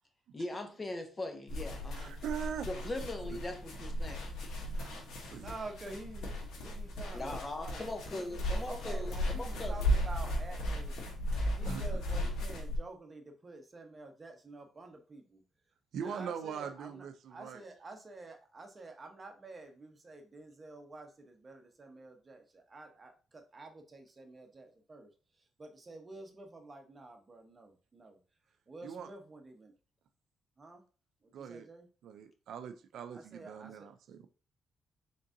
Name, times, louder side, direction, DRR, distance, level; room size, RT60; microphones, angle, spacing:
voice 1, 0.3-2.2 2.7-4.2 7.1-9.8, left 2 dB, 25° left, 0.9 m, -40 dB
sound 1, 1.5-12.8, equal, 75° left, 1.0 m, -36 dB
voice 2, 1.9-2.7 3.3-3.4 4.8-4.9 5.2-5.5 9.1-9.2 11.6-11.8 15.9-17.6 28.8-29.1 31.3-31.7 32.0-34.3, right 7 dB, 75° right, 0.4 m, -41 dB
voice 3, 5.4-10.9 11.5-15.4 15.9-25.1 25.6-28.2 28.7-29.7 30.6-30.8 31.2-31.9 33.1-33.9, right 2 dB, 30° right, 0.9 m, -49 dB
3.8 x 3.6 x 2.6 m
cardioid pair, 90°, 0 cm